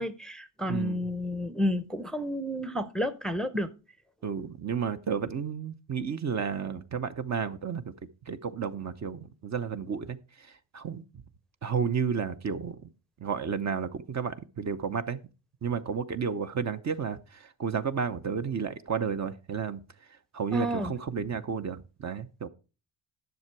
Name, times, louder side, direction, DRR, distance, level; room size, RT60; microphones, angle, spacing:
voice 1, 0.0-3.7 20.5-20.9, equal, ahead, 0.7 m, -31 dB
voice 2, 0.7-1.0 4.2-7.9 8.3-10.2 10.7-11.0 11.6-12.9 13.2-15.2 15.6-19.8 20.3-22.5, right 6 dB, 40° right, 0.8 m, -32 dB
10.5 x 6.8 x 4.6 m
cardioid pair, 85°, 45 cm